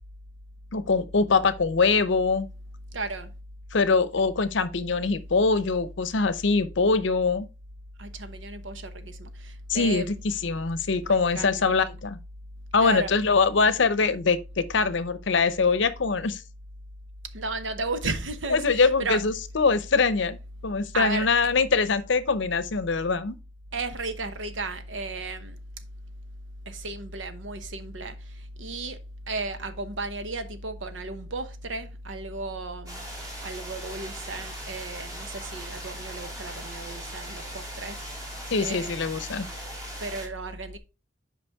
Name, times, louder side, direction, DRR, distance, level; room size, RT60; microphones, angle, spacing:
voice 1, 0.7-2.5 3.7-7.5 9.7-12.2 12.7-16.4 18.5-20.4 20.6-23.4 38.5-39.5, left 4 dB, 70° left, 0.7 m, -23 dB
voice 2, 2.9-3.3 8.0-10.2 10.9-11.6 12.8-13.1 17.3-19.2 20.9-21.3 23.7-25.6 26.7-28.1 28.6-29.0 29.3-33.0 33.4-38.0 38.6-39.0 40.0-40.8, right 3 dB, 75° right, 0.9 m, -34 dB
sound 1, 32.9-40.3, right 1 dB, 20° right, 2.7 m, -40 dB
8.0 x 5.1 x 3.4 m
head